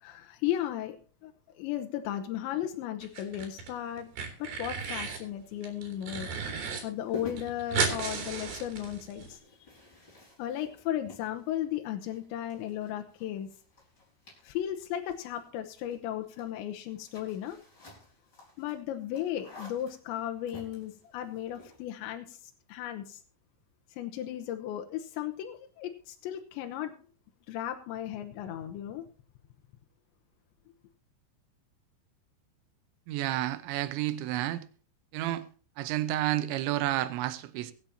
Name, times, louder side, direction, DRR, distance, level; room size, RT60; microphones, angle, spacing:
voice 1, 0.0-1.0 1.2-4.1 4.4-6.4 6.8-9.4 10.4-13.5 14.4-17.6 18.6-22.4 22.7-23.2 23.9-26.9 27.5-29.1, left 11 dB, 85° left, 3.2 m, -35 dB
sound 1, 3.0-3.7 4.0-5.2 5.6-6.8 7.1-7.2 7.4-9.3, right 5 dB, 60° right, 4.6 m, -34 dB
sound 2, 6.2-21.9, left 3 dB, 25° left, 5.2 m, -51 dB
voice 2, 33.1-34.6 35.1-35.4 35.8-37.7, right 14 dB, 85° right, 3.3 m, -30 dB
23.0 x 8.8 x 2.8 m
omnidirectional pair, 5.2 m